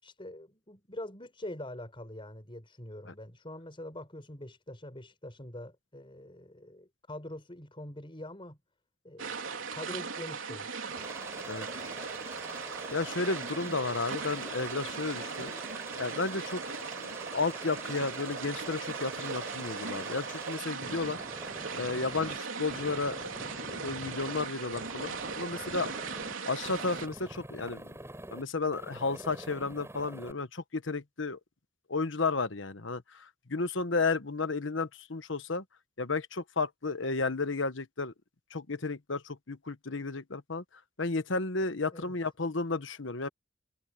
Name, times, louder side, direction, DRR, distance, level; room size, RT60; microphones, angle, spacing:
voice 1, 0.0-8.6 9.0-10.7 11.7-12.1 41.9-42.1, left 1 dB, 25° left, 5.6 m, -44 dB
sound 1, 9.2-27.1, right 5 dB, 85° right, 3.6 m, -39 dB
Aircraft, 10.9-22.4 22.7-24.5 24.7-26.3 26.6-28.4 28.7-30.3, right 1 dB, 15° right, 7.5 m, -45 dB
voice 2, 12.9-15.6 15.9-21.2 21.7-25.9 26.5-27.9 28.3-31.4 31.9-35.6 36.0-38.1 38.5-40.6 41.0-43.3, left 3 dB, 70° left, 1.2 m, -33 dB
head